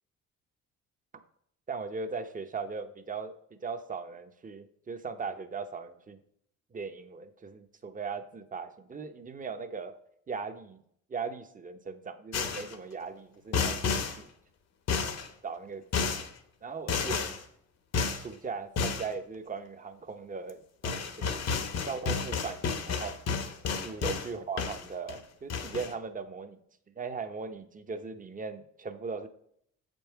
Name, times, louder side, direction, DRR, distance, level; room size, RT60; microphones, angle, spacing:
voice 1, 1.7-6.2 6.7-9.9 10.3-10.8 11.1-14.3 15.4-16.2 16.6-17.4 18.1-21.5 21.8-23.2 23.7-26.6 27.0-29.3, right 5 dB, 25° right, 9 dB, 0.7 m, -39 dB
sound 1, 12.3-12.8 13.5-14.2 14.9-15.3 15.9-16.3 16.9-17.4 17.9-18.2 18.8-19.1 20.5-20.6 20.8-24.3 24.6-25.2 25.5-25.9, left 5 dB, 60° left, 0.9 m, -31 dB
7.0 x 5.4 x 4.5 m, 0.70 s
cardioid pair, 90°, 30 cm